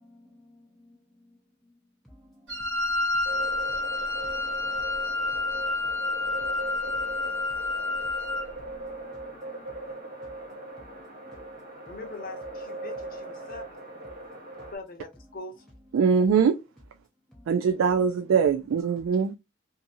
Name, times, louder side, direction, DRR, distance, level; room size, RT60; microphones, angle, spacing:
voice 1, 0.0-1.0 1.3-1.4 2.0-5.8 6.4-7.7 8.6-9.7 10.0-10.1 10.8-11.9 13.4-13.5 14.2-14.5 17.3-17.5, left 1 dB, ahead, 0.4 m, -56 dB
Wind instrument woodwind instrument, 2.5-8.5, left 2 dB, 65° right, 1.1 m, -29 dB
sound 1, 3.3-14.8, right 2 dB, 45° right, 0.8 m, -40 dB
voice 2, 11.9-14.0 14.7-15.7, left 3 dB, 45° left, 0.7 m, -42 dB
voice 3, 15.9-16.6 17.5-19.3, right 6 dB, 90° right, 0.3 m, -22 dB
2.7 x 2.5 x 2.5 m
head